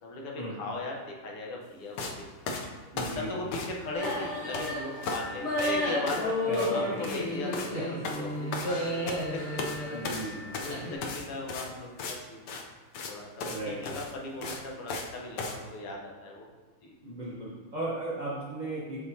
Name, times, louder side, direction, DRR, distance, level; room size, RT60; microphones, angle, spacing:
voice 1, 0.0-2.3 3.2-6.3 6.7-9.1 9.3-9.4 10.0-12.5 13.1-16.5 16.8-16.9, left 2 dB, 85° left, -1 dB, 1.9 m, -38 dB
sound 1, 2.0-2.2 2.5-3.8 4.0-4.7 5.0-5.3 5.6-5.8 6.1-6.3 6.5-6.7 7.0-7.2 7.5-7.7 8.0-9.2 9.6-9.8 10.0-12.2 12.5-12.6 12.9-13.1 13.4-13.6 13.8-15.1 15.4-15.6, left 3 dB, 65° left, 1.1 m, -36 dB
voice 2, 2.9-3.4 6.5-7.0 7.7-7.9 9.9-10.4 13.4-13.9 17.0-19.0, right 1 dB, 55° right, -7 dB, 0.4 m, -36 dB
sound 2, 3.9-10.9, left 1 dB, 35° left, 1.4 m, -32 dB
7.8 x 5.4 x 2.7 m, 1.3 s
omnidirectional pair, 2.4 m